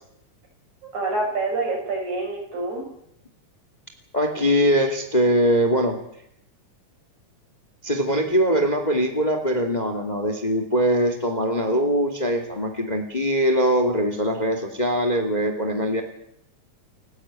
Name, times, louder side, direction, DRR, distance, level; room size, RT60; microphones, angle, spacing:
voice 1, 0.8-2.9, right 3 dB, 70° right, 0 dB, 8.5 m, -27 dB
voice 2, 4.1-6.0 7.8-16.0, equal, 15° left, 6 dB, 2.2 m, -22 dB
29.5 x 11.5 x 9.0 m, 0.74 s
omnidirectional pair, 3.5 m